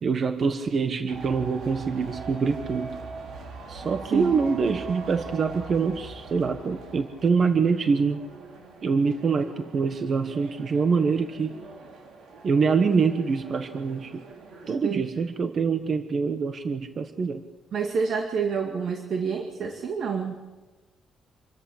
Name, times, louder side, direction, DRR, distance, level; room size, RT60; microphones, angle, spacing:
voice 1, 0.0-2.9 3.7-8.3 8.8-11.6 12.4-14.2 14.7-17.4, right 5 dB, 40° right, 8 dB, 1.2 m, -25 dB
sound 1, 1.1-14.7, right 3 dB, 75° right, 4.7 m, -42 dB
voice 2, 17.7-20.4, right 6 dB, 55° right, 3 dB, 2.2 m, -28 dB
27.0 x 14.0 x 8.6 m, 1.2 s
cardioid pair, 145°, 0 cm